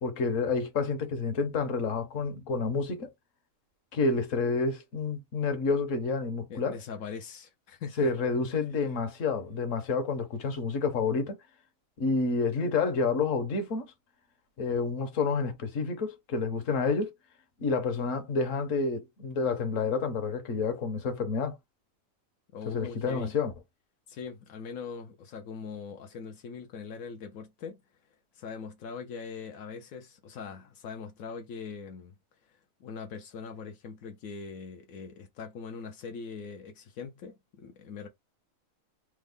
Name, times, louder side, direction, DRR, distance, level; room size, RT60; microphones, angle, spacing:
voice 1, 0.0-3.1 3.9-6.8 8.0-11.4 12.0-13.9 14.6-17.1 17.6-21.6 22.7-23.5, left 4 dB, 65° left, 1.3 m, -29 dB
voice 2, 6.5-8.1 22.5-23.4 24.1-27.8 28.3-32.1 32.5-38.1, left 5 dB, 90° left, 1.1 m, -41 dB
3.5 x 2.1 x 3.4 m
omnidirectional pair, 1.4 m